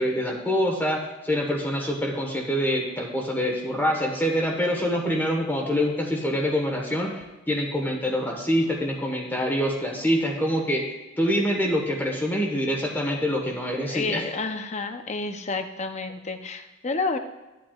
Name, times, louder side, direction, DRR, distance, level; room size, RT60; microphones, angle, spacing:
voice 1, 0.0-10.8 11.2-14.2, equal, 10° left, 0 dB, 1.3 m, -25 dB
voice 2, 13.9-17.2, left 3 dB, 35° left, 7 dB, 0.7 m, -30 dB
13.5 x 9.0 x 2.4 m, 1.1 s
head